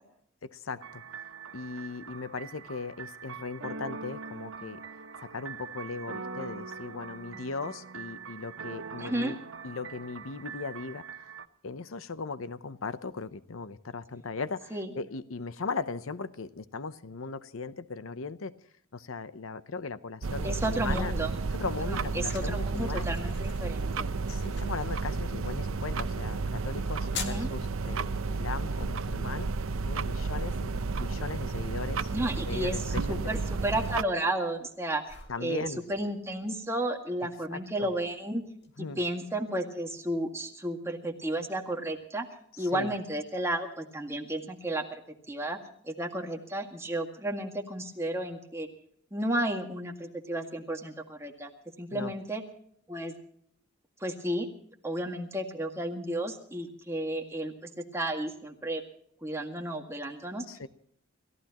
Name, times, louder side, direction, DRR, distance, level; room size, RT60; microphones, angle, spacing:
voice 1, 0.4-1.0 1.5-4.8 5.2-9.4 9.6-11.3 11.6-18.5 18.9-21.1 21.5-23.1 24.3-29.5 29.9-32.1 32.4-33.3 35.3-35.8 37.5-37.9 38.8-39.0 42.6-42.9 51.9-52.1 60.5-60.7, left 4 dB, 80° left, 14 dB, 0.8 m, -38 dB
sound 1, 0.8-11.5, right 5 dB, 70° right, 1.1 m, -43 dB
voice 2, 9.0-9.4 14.7-14.9 20.4-21.3 21.8-24.1 27.1-27.5 32.1-35.2 35.4-38.4 38.8-42.3 42.6-45.0 45.3-45.6 45.8-48.7 49.1-51.5 51.8-52.4 52.9-53.1 54.0-54.5 54.8-58.8 59.2-60.4, right 1 dB, 15° right, 2 dB, 2.0 m, -33 dB
sound 2, 20.2-34.0, right 4 dB, 90° right, 0.7 m, -32 dB
sound 3, 21.2-38.7, left 6 dB, 60° left, 2.1 m, -50 dB
29.5 x 15.0 x 3.0 m, 0.67 s
head